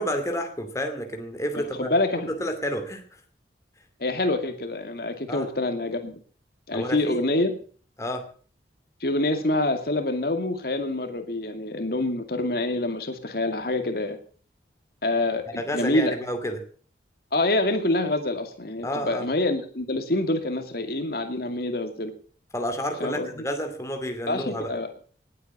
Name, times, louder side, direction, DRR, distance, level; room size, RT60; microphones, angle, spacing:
voice 1, 0.0-2.0 2.3-3.0 5.3-5.5 6.7-7.2 8.0-8.3 15.6-16.6 18.8-19.3 22.5-24.7, equal, 15° left, 5 dB, 2.5 m, -30 dB
voice 2, 1.6-2.3 4.0-6.2 6.7-7.5 9.0-14.2 15.0-16.2 17.3-22.1 23.0-23.3 24.3-24.9, left 2 dB, 60° left, 7 dB, 2.3 m, -26 dB
20.0 x 8.4 x 7.1 m, 0.43 s
head